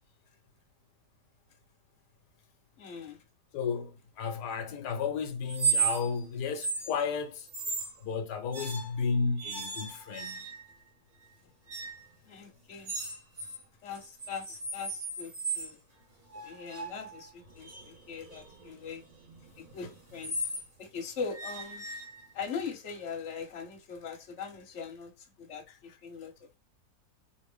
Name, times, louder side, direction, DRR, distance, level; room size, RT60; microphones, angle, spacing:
voice 1, 2.8-3.2 12.3-12.9 13.8-15.8 16.4-19.0 19.6-20.3 20.8-21.8 22.3-26.3, left 5 dB, 50° left, 1.3 m, -41 dB
voice 2, 3.5-7.5 8.0-10.4 25.7-25.8, left 5 dB, 85° left, 1.3 m, -33 dB
sound 1, 5.5-6.2 6.6-6.9 7.5-8.0 8.5-9.0 9.4-10.8 11.7-12.1 12.9-13.6 13.9-15.7 16.3-20.7 21.3-22.5, right 4 dB, 30° right, 1.3 m, -35 dB
4.8 x 2.6 x 3.4 m
omnidirectional pair, 1.7 m